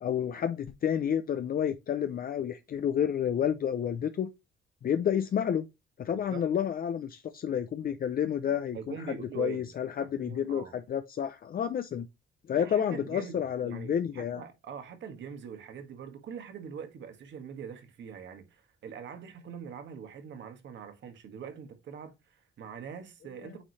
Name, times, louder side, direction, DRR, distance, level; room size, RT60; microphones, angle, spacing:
voice 1, 0.0-4.3 4.8-5.7 6.0-9.1 9.4-12.1 12.5-14.4, left 9 dB, 50° left, 0.6 m, -30 dB
voice 2, 6.1-6.4 8.7-9.7 10.0-10.8 12.5-23.6, right 7 dB, 65° right, 1.6 m, -43 dB
8.9 x 3.2 x 4.1 m
cardioid pair, 90°, 20 cm